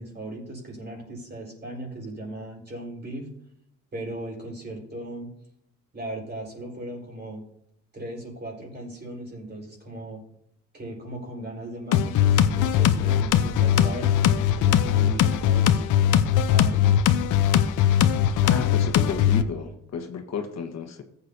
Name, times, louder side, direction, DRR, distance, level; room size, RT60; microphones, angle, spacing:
voice 1, 0.0-3.3 3.9-5.3 5.9-7.4 7.9-10.2 10.7-15.8 16.5-17.0, right 1 dB, 35° right, 4.5 m, -37 dB
sound 1, 11.9-19.4, left 9 dB, 85° left, 0.7 m, -20 dB
voice 2, 18.4-21.0, left 6 dB, 60° left, 1.5 m, -32 dB
14.5 x 8.4 x 2.8 m
cardioid pair, 90°, 30 cm